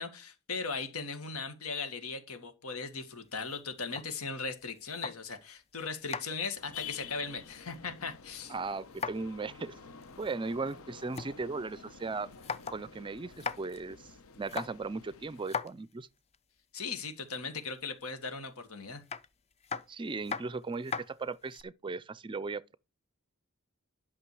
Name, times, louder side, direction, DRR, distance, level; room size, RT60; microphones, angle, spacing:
voice 1, 0.0-8.5 16.7-19.0, left 4 dB, 90° left, 1.9 m, -38 dB
sound 1, 3.2-5.5 5.8-8.0 8.3-9.4 9.7-9.8 10.0-11.3 11.7-11.8 12.2-12.9 13.2-13.8 14.3-16.4 17.3-17.8 19.0-21.6, left 5 dB, 30° left, 0.6 m, -40 dB
sound 2, 6.6-15.5, left 6 dB, 70° left, 1.0 m, -50 dB
voice 2, 8.5-9.8 10.2-12.3 12.7-14.1 14.4-16.1 19.9-22.8, right 3 dB, 25° right, 0.4 m, -37 dB
11.5 x 6.0 x 4.8 m
head